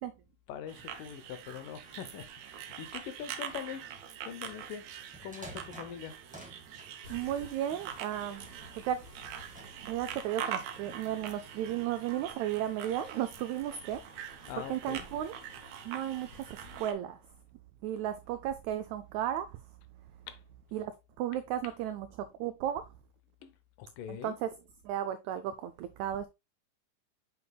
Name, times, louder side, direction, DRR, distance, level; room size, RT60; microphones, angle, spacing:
voice 1, 0.5-3.8 4.2-6.2 14.5-15.1 20.3-20.4 21.6-21.7 23.4-23.5 23.8-24.4, left 9 dB, 80° left, 2.4 m, -43 dB
sound 1, 0.7-16.9, right 9 dB, 70° right, 1.9 m, -44 dB
sound 2, 5.0-6.9 7.7-8.6 9.1-9.9, right 1 dB, 10° right, 0.4 m, -51 dB
sound 3, 7.0-16.8, left 1 dB, 20° left, 2.3 m, -55 dB
voice 2, 7.1-8.5 8.8-9.0 9.8-14.0 14.7-15.3 15.8-17.2 17.8-19.6 20.7-20.9 21.2-22.9 24.1-24.5 24.8-26.3, right 11 dB, 85° right, 1.6 m, -34 dB
6.8 x 6.6 x 2.2 m
omnidirectional pair, 3.8 m